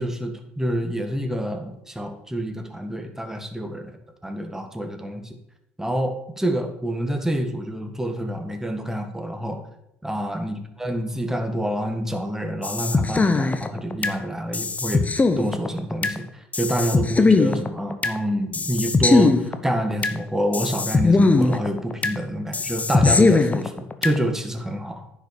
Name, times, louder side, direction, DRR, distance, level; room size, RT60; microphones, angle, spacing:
voice 1, 0.0-3.9 4.2-5.4 5.8-9.6 10.0-15.0 15.4-25.1, equal, 5° right, 5 dB, 1.8 m, -27 dB
sound 1, 12.6-14.2 14.5-16.2 16.5-18.2 18.5-20.2 20.5-22.2 22.5-24.2, left 3 dB, 25° left, 1.1 m, -20 dB
10.0 x 5.9 x 6.6 m, 0.82 s
hypercardioid pair, 65°, 6 cm